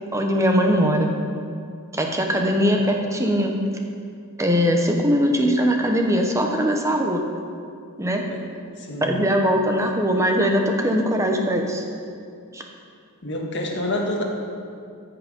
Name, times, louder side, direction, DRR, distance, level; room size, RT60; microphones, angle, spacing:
voice 1, 0.1-1.1 1.9-3.6 4.4-7.2 8.0-8.2 9.0-11.8 12.5-12.6, equal, 15° right, 2 dB, 0.9 m, -21 dB
voice 2, 8.8-9.2 13.2-14.2, left 1 dB, 55° left, 0 dB, 1.5 m, -27 dB
14.0 x 5.9 x 5.3 m, 2.3 s
head